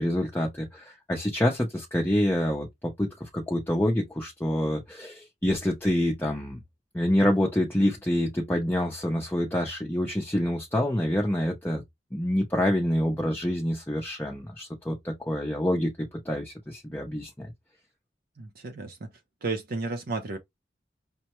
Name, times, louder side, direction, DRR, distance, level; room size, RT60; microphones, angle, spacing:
voice 1, 0.0-6.6 6.9-11.8 12.1-17.5, left 1 dB, 10° left, 0.6 m, -27 dB
voice 2, 18.4-19.1 19.4-20.4, right 3 dB, 55° right, 0.6 m, -33 dB
5.3 x 2.1 x 3.0 m
head